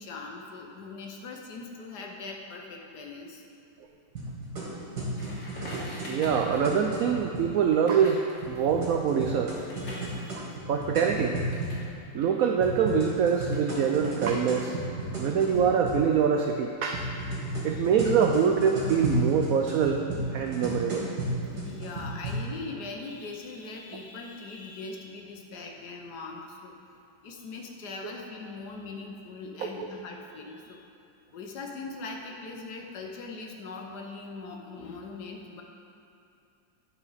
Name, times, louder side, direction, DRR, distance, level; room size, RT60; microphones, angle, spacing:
voice 1, 0.0-3.4 5.4-5.6 6.0-6.1 9.7-10.4 17.7-17.9 21.6-26.8 27.2-30.9 31.3-35.6, left 3 dB, 65° left, 1 dB, 1.4 m, -41 dB
sound 1, 4.2-7.5 8.4-11.8 12.6-16.1 16.9-22.3, right 1 dB, 60° right, 2.5 m, -33 dB
Crackle, 5.2-11.9 12.1-14.6, left 1 dB, 45° left, 2.4 m, -46 dB
voice 2, 6.1-9.5 10.7-11.4 12.1-14.8 15.2-17.0 17.6-20.0 20.3-21.1 29.6-29.9, right 7 dB, 85° right, 3 dB, 0.7 m, -25 dB
10.5 x 4.9 x 5.6 m, 2.7 s
omnidirectional pair, 2.0 m